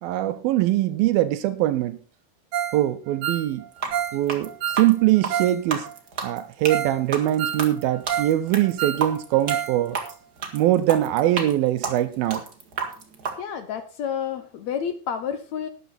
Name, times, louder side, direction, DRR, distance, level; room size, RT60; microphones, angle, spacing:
voice 1, 0.0-2.0 2.7-3.6 4.1-5.9 6.2-10.0 10.5-12.4, right 14 dB, 80° right, 2.5 m, -22 dB
Ringtone, 2.5-2.8 3.1-5.6 5.9-6.0 6.4-6.5 6.7-7.0 7.2-8.4 8.6-9.8 10.0-10.1 10.6-10.7, right 10 dB, 60° right, 2.5 m, -29 dB
sound 1, 3.7-13.4, right 5 dB, 40° right, 1.6 m, -31 dB
voice 2, 13.4-15.7, left 8 dB, 70° left, 1.7 m, -30 dB
12.5 x 10.5 x 4.2 m
omnidirectional pair, 4.3 m